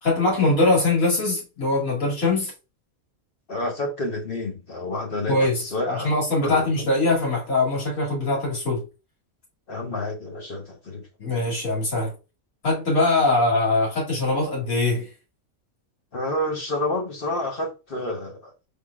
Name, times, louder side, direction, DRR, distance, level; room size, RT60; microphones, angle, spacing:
voice 1, 0.0-2.5 5.3-8.8 11.2-12.1 12.6-15.1, left 2 dB, 70° left, 2.9 m, -22 dB
voice 2, 3.5-6.1 6.4-6.9 9.7-11.1 16.1-18.5, left 1 dB, 45° left, 1.2 m, -29 dB
5.2 x 3.9 x 2.3 m
omnidirectional pair, 1.5 m